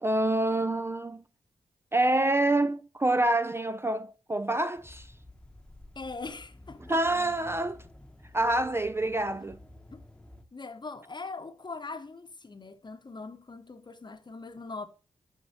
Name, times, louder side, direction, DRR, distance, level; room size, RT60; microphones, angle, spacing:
voice 1, 0.0-1.2 1.9-5.1 6.9-7.8 8.3-9.6, right 1 dB, 20° right, 0.3 m, -27 dB
sound 1, 4.8-10.4, left 1 dB, 5° left, 1.0 m, -51 dB
voice 2, 5.9-7.0 9.9-10.0 10.5-14.9, left 3 dB, 35° left, 0.9 m, -41 dB
6.3 x 5.6 x 2.8 m
supercardioid pair, 45°, 13 cm